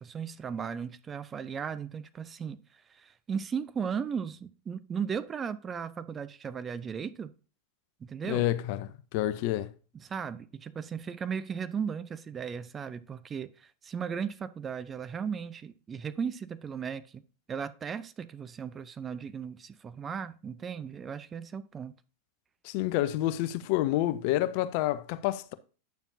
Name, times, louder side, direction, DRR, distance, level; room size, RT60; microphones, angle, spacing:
voice 1, 0.0-2.6 2.9-7.3 8.0-8.5 10.0-17.2 17.5-21.9, right 7 dB, 20° right, 0.6 m, -36 dB
voice 2, 8.2-9.7 22.6-25.5, left 14 dB, 45° left, 0.6 m, -29 dB
9.1 x 7.0 x 2.7 m
figure-of-eight pair, 90°, 0 cm